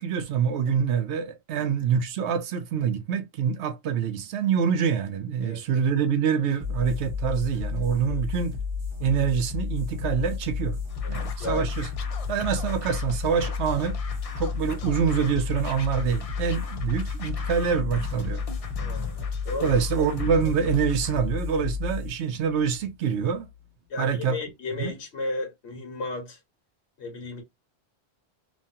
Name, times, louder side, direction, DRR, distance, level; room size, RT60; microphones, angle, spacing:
voice 1, 0.0-8.6 9.0-10.8 11.1-11.9 12.3-14.0 14.4-18.4 19.6-23.5 24.0-24.4 24.8-24.9, right 7 dB, 90° right, 0.9 m, -26 dB
sound 1, 6.6-23.6, left 5 dB, 25° right, 1.1 m, -32 dB
Scratching (performance technique), 10.9-21.2, left 5 dB, 50° left, 0.4 m, -41 dB
voice 2, 11.0-11.7 18.8-19.7 23.9-26.4 27.0-27.4, left 3 dB, 80° left, 1.4 m, -34 dB
3.1 x 2.2 x 2.6 m
omnidirectional pair, 1.1 m